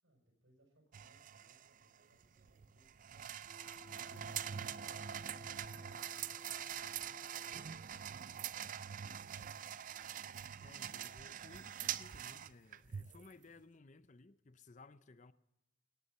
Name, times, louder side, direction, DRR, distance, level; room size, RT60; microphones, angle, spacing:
voice 1, 0.0-7.1 7.8-9.9, right 1 dB, 85° right, 6.3 m, -73 dB
sound 1, 0.9-13.3, right 9 dB, 40° right, 0.4 m, -44 dB
sound 2, 3.4-7.7, left 4 dB, 5° left, 2.4 m, -59 dB
voice 2, 10.6-15.3, left 3 dB, 40° left, 0.6 m, -59 dB
18.5 x 9.8 x 5.5 m
head